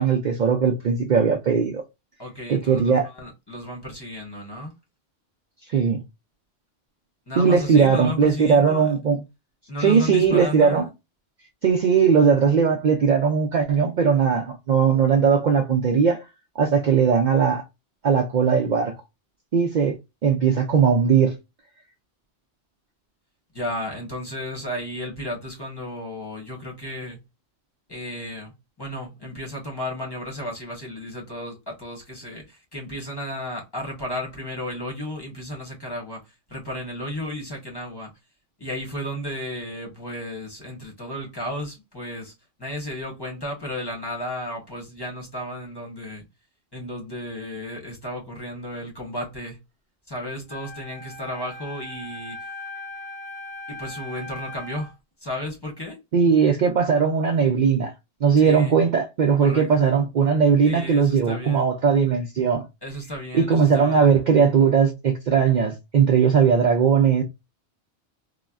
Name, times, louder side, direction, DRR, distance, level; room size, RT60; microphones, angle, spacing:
voice 1, 0.0-1.8 2.5-3.1 5.7-6.0 7.4-9.2 9.8-10.8 11.6-16.2 16.6-17.6 18.0-18.9 19.5-20.0 20.2-21.4 56.1-57.9 58.2-62.7 63.3-67.2, right 6 dB, 55° right, 0.5 m, -19 dB
voice 2, 2.2-4.7 7.3-8.9 9.7-10.9 23.5-27.2 27.9-38.1 38.6-42.3 42.6-46.2 46.7-49.6 50.1-52.5 53.7-54.9 55.2-56.0 58.4-58.8 59.4-59.8 60.6-61.7 62.8-64.2, left 1 dB, 25° left, 0.9 m, -33 dB
Wind instrument woodwind instrument, 50.5-54.9, left 2 dB, 30° right, 1.1 m, -39 dB
3.9 x 2.1 x 2.2 m
omnidirectional pair, 1.1 m